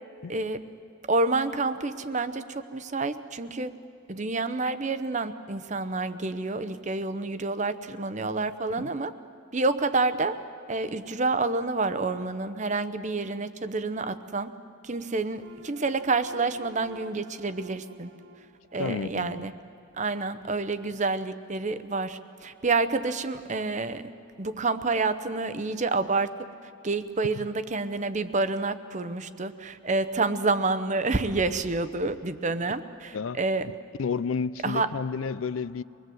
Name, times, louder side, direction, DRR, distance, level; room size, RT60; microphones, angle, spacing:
voice 1, 0.3-0.6 1.1-3.7 4.1-9.1 9.5-10.4 10.7-14.5 14.8-18.1 18.7-19.5 20.0-24.0 24.4-26.3 26.8-33.7 34.6-34.9, right 3 dB, 35° right, 0.8 m, -28 dB
sound 1, 15.4-19.7, equal, 80° right, 1.0 m, -50 dB
voice 2, 18.8-19.5 33.1-33.4 34.0-35.8, left 5 dB, 80° left, 0.5 m, -31 dB
25.0 x 20.5 x 7.9 m
head